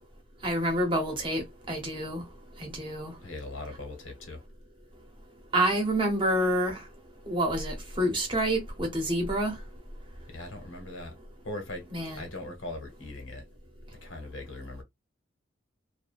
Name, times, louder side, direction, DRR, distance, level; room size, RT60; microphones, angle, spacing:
voice 1, 0.4-2.2 2.6-3.1 5.5-6.8 7.3-9.5 11.9-12.3, right 1 dB, 25° right, 0.9 m, -28 dB
voice 2, 3.2-4.4 10.3-11.1 11.4-13.5 14.0-14.8, left 2 dB, 80° left, 1.1 m, -40 dB
2.6 x 2.3 x 2.4 m
head